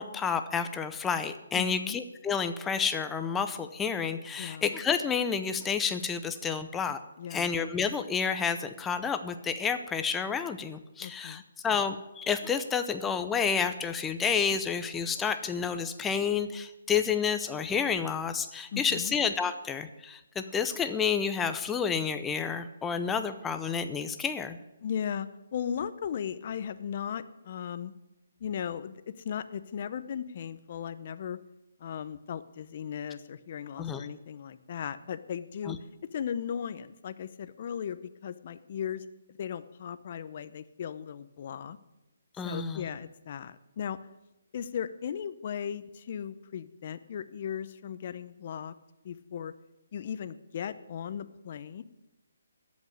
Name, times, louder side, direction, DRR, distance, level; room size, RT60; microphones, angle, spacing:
voice 1, 0.0-7.0 7.3-24.6 33.8-34.1 35.7-35.8 42.4-42.9, left 6 dB, 10° left, 8 dB, 0.6 m, -30 dB
voice 2, 1.5-2.0 4.4-4.7 7.2-7.5 11.0-11.4 18.7-19.1 24.8-27.9 28.4-31.4 31.8-35.8 36.1-41.8 42.4-44.0 44.5-48.7 49.0-49.5 49.9-51.8, left 8 dB, 45° left, 13 dB, 0.7 m, -37 dB
14.0 x 5.4 x 9.5 m, 0.96 s
hypercardioid pair, 155°, 0 cm